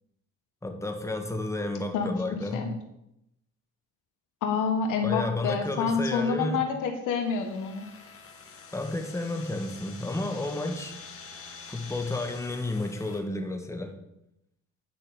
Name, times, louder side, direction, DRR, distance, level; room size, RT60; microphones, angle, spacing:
voice 1, 0.6-2.7 5.0-6.6 8.7-11.0 11.7-14.0, left 2 dB, 10° left, 4 dB, 1.7 m, -32 dB
voice 2, 1.9-2.7 4.4-7.8, left 5 dB, 85° left, 4 dB, 1.8 m, -28 dB
sound 1, 7.1-13.2, left 5 dB, 50° left, 1.9 m, -47 dB
10.5 x 5.6 x 6.8 m, 0.82 s
cardioid pair, 90°, 30 cm